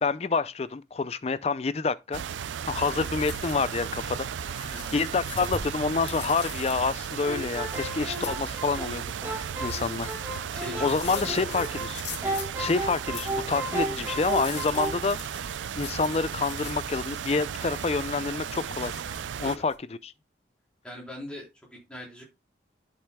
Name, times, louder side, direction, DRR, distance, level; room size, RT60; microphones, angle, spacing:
voice 1, 0.0-2.2 2.7-10.1 10.8-12.0 12.6-15.2 15.8-19.1 19.4-19.7 20.0-20.1, left 4 dB, 35° left, 0.4 m, -28 dB
sound 1, 2.1-19.6, right 8 dB, 85° right, 0.4 m, -35 dB
sound 2, 2.7-19.7, left 5 dB, 70° left, 1.8 m, -44 dB
voice 2, 4.7-5.1 9.6-9.7 10.5-11.6 12.6-12.8 19.4-19.6 20.8-22.2, left 1 dB, 5° left, 3.8 m, -42 dB
sound 3, 7.1-11.9 12.2-15.0, right 1 dB, 15° right, 2.1 m, -34 dB
11.0 x 6.8 x 2.2 m
head